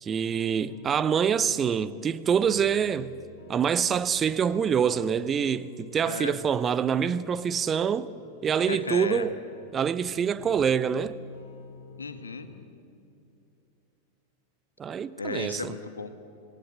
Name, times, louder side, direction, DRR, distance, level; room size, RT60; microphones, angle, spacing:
voice 1, 0.0-3.1 3.5-8.1 8.4-9.3 9.7-11.1 14.8-15.7, right 7 dB, 25° right, 0.8 m, -26 dB
sound 1, 0.6-12.6, left 2 dB, 55° left, 3.6 m, -50 dB
voice 2, 6.0-6.4 8.6-9.3 12.0-12.5 15.2-16.1, left 4 dB, 75° left, 1.6 m, -34 dB
26.5 x 20.0 x 8.1 m
figure-of-eight pair, 90°, 0 cm